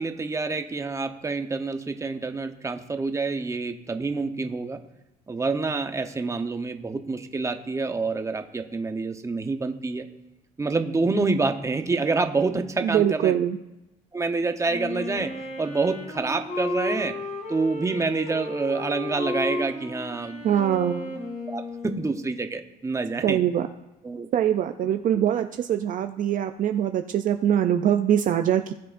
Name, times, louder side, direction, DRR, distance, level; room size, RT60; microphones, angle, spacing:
voice 1, 0.0-4.8 5.3-10.1 10.6-13.3 14.1-15.3 15.6-17.1 17.5-20.5 21.4-23.4 24.0-24.3 25.1-25.2, right 3 dB, 20° right, 6 dB, 0.9 m, -27 dB
voice 2, 12.8-13.6 20.4-21.1 23.2-23.7 24.3-28.7, right 10 dB, 50° right, 7 dB, 0.5 m, -23 dB
Wind instrument woodwind instrument, 14.7-22.4, left 2 dB, 45° left, 2.7 m, -34 dB
19.0 x 7.6 x 2.6 m, 0.96 s
cardioid pair, 110°, 17 cm